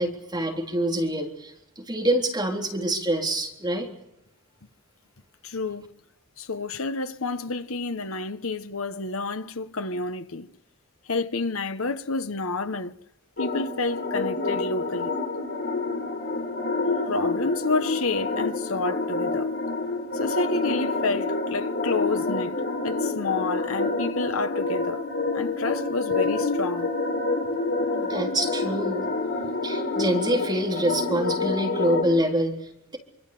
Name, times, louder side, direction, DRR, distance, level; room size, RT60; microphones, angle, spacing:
voice 1, 0.0-3.9 28.0-29.1 29.6-33.0, right 1 dB, 20° right, 3.8 m, -26 dB
voice 2, 5.4-5.9 6.4-10.5 11.1-12.9 13.4-15.2 17.1-19.5 20.1-22.5 22.8-25.0 25.3-26.9, left 3 dB, 70° left, 1.2 m, -29 dB
sound 1, 13.4-32.0, left 3 dB, 55° left, 4.8 m, -28 dB
26.5 x 25.5 x 6.9 m
head